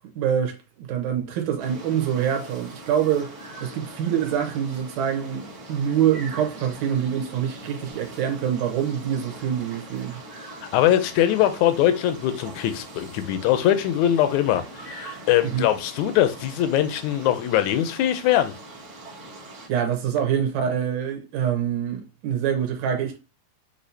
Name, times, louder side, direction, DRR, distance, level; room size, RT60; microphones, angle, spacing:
voice 1, 0.2-3.3 3.6-10.2 15.4-15.6 19.7-23.2, right 9 dB, 75° right, 2.2 m, -25 dB
sound 1, 1.6-19.7, right 2 dB, 45° right, 0.9 m, -42 dB
voice 2, 10.7-18.5, left 12 dB, 80° left, 1.9 m, -22 dB
6.3 x 2.7 x 2.7 m
omnidirectional pair, 3.4 m